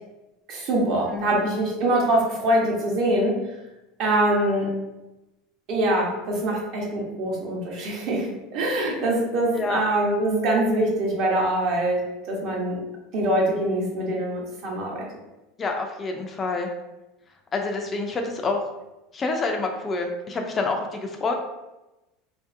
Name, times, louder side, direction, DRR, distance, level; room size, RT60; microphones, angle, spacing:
voice 1, 0.5-3.4 4.0-4.7 5.7-12.8 13.1-15.1, right 1 dB, 55° right, -2 dB, 0.9 m, -24 dB
voice 2, 15.6-16.7 17.5-18.6 19.1-21.4, left 3 dB, 25° left, 3 dB, 0.3 m, -27 dB
3.1 x 2.6 x 2.5 m, 1.0 s
supercardioid pair, 130°, 0 cm